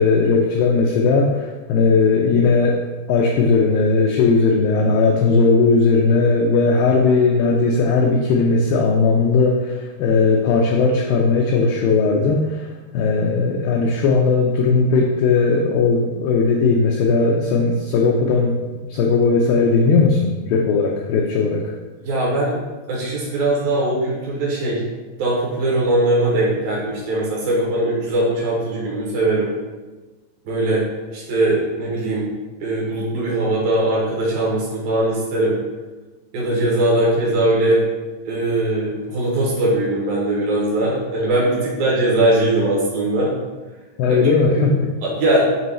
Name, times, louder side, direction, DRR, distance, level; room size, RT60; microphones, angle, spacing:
voice 1, 0.0-2.8 3.1-12.7 12.9-18.6 18.9-21.7 44.0-44.9, left 4 dB, 90° left, 0 dB, 2.0 m, -17 dB
voice 2, 22.0-22.6 22.9-24.8 25.2-29.5 30.5-30.8 31.1-32.3 32.6-35.6 36.3-37.8 38.2-43.3 44.6-44.7 45.0-45.5, right 1 dB, 70° right, -4 dB, 2.7 m, -20 dB
7.5 x 3.0 x 4.2 m, 1.2 s
omnidirectional pair, 4.8 m